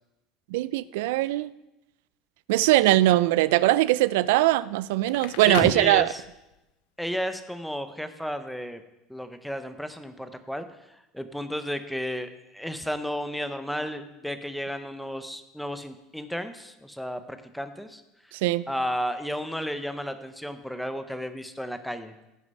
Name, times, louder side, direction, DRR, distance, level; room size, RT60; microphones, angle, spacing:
voice 1, 0.5-1.5 2.5-6.1 18.4-18.6, right 16 dB, 90° right, 18 dB, 0.4 m, -21 dB
Crackle, 4.9-6.6, left 11 dB, 75° left, 0.8 m, -37 dB
voice 2, 5.4-6.2 7.0-8.8 9.1-18.3 18.7-22.1, equal, ahead, 9 dB, 0.6 m, -33 dB
16.0 x 6.5 x 5.3 m, 0.95 s
cardioid pair, 175°, 0 cm